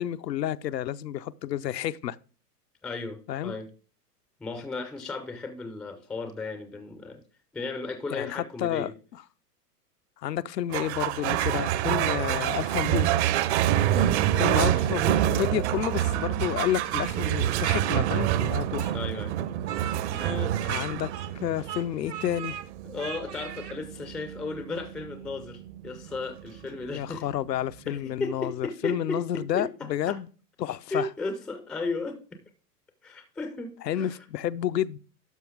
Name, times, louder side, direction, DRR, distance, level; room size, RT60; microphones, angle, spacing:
voice 1, 0.0-2.2 3.3-3.6 8.1-9.2 10.2-13.1 14.4-18.9 20.6-21.1 21.4-22.6 26.9-30.3 30.6-31.1 33.9-35.0, left 11 dB, 90° left, 0.6 m, -30 dB
voice 2, 2.8-3.7 4.4-7.2 7.5-8.9 13.9-14.2 18.9-19.3 20.1-20.5 22.8-27.3 27.9-30.2 30.9-32.4 33.0-34.2, left 3 dB, ahead, 0.3 m, -35 dB
sound 1, 10.7-27.4, right 12 dB, 45° right, 0.6 m, -27 dB
Speech, 18.8-21.4 21.6-22.7 23.0-23.8, right 10 dB, 90° right, 1.4 m, -39 dB
12.0 x 5.4 x 3.5 m
hypercardioid pair, 110°, 48 cm